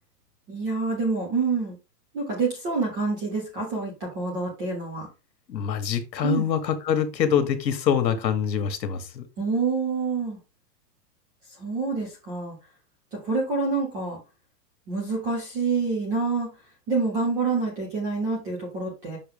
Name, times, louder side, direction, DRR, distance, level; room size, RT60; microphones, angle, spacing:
voice 1, 0.5-1.8 2.1-5.1 6.2-6.5 9.4-10.4 11.6-12.5 13.1-14.2 14.9-16.5 16.9-19.2, right 4 dB, 10° right, -2 dB, 0.4 m, -27 dB
voice 2, 5.5-9.2, left 8 dB, 85° left, 9 dB, 1.4 m, -25 dB
5.6 x 5.6 x 3.5 m, 0.28 s
hypercardioid pair, 150°, 50 cm